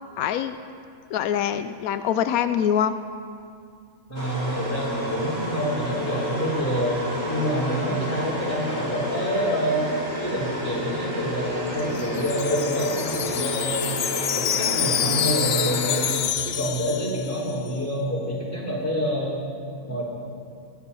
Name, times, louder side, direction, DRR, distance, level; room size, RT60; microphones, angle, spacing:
voice 1, 0.2-0.6 1.1-2.9, left 9 dB, 85° left, 11 dB, 1.0 m, -24 dB
voice 2, 4.1-7.0 7.3-9.9 10.2-13.9 14.4-19.4 19.8-20.0, equal, 10° left, -4 dB, 3.4 m, -27 dB
sound 1, 4.1-16.5, equal, 20° right, 2.9 m, -31 dB
Wind chime, 11.7-17.7, left 10 dB, 65° left, 0.6 m, -27 dB
21.0 x 9.9 x 5.6 m, 2.3 s
omnidirectional pair, 1.5 m